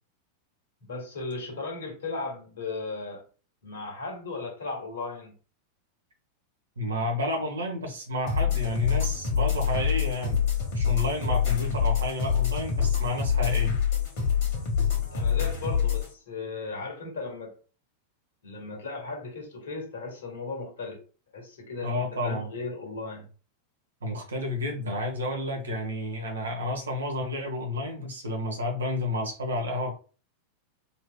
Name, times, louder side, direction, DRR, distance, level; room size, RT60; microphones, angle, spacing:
voice 1, 0.9-3.2 3.6-5.4 15.1-17.6 18.4-21.0 21.3-23.3, left 3 dB, 60° left, 1.7 m, -36 dB
voice 2, 6.8-10.4 10.7-13.8 21.8-22.5 24.0-29.9, left 1 dB, 70° right, 1.2 m, -31 dB
sound 1, 8.3-16.1, left 7 dB, 45° left, 1.5 m, -26 dB
4.1 x 3.1 x 2.3 m
figure-of-eight pair, 90°, 0 cm